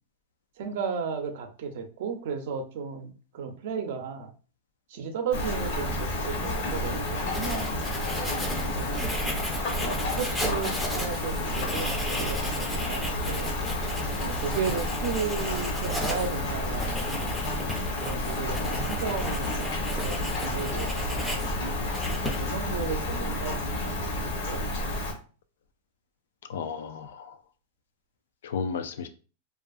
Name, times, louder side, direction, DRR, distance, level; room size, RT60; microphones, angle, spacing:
voice 1, 0.6-4.3 4.9-7.8 8.1-9.1 9.7-13.5 14.2-17.4 18.0-19.6 20.0-21.6 22.4-24.6 25.0-25.1, right 6 dB, 65° right, 0.5 m, -34 dB
Rain, 5.3-25.1, left 1 dB, 60° left, 0.8 m, -30 dB
Writing, 6.5-22.7, left 1 dB, 5° left, 0.4 m, -35 dB
voice 2, 18.5-18.9 26.5-27.3 28.4-29.1, left 6 dB, 85° left, 0.3 m, -34 dB
2.6 x 2.4 x 2.4 m
supercardioid pair, 150°, 0 cm